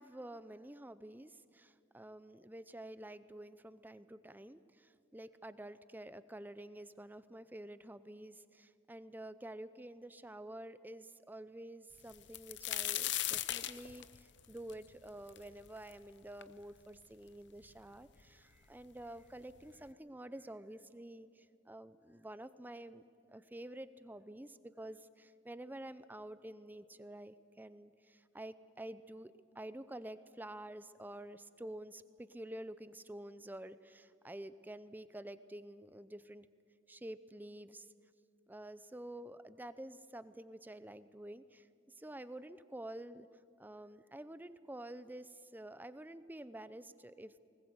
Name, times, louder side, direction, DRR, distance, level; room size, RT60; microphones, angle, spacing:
voice 1, 0.0-23.0 23.3-36.5 36.9-37.9 38.5-41.7 42.0-43.3 43.6-47.4, right 1 dB, 10° right, 14 dB, 0.5 m, -49 dB
sound 1, 12.1-15.9 16.4-16.5 17.3-17.4 17.6-18.3 19.2-19.3 19.7-19.9, left 13 dB, 60° left, 0.7 m, -38 dB
20.5 x 19.0 x 8.0 m, 2.4 s
head